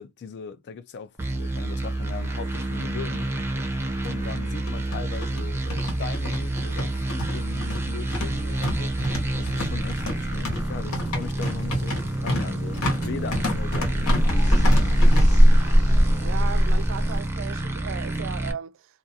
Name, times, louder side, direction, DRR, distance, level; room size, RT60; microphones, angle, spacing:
voice 1, 0.0-3.3 4.0-9.0 9.3-15.2, left 5 dB, 50° left, 0.4 m, -39 dB
sound 1, 1.2-17.2, equal, 30° left, 0.8 m, -25 dB
sound 2, 1.2-18.5, right 2 dB, 10° right, 0.5 m, -29 dB
sound 3, 3.2-3.3 3.6-3.7 4.5-15.2, left 1 dB, 80° left, 1.1 m, -31 dB
voice 2, 16.2-18.9, right 7 dB, 60° right, 0.4 m, -36 dB
2.4 x 2.3 x 2.6 m
head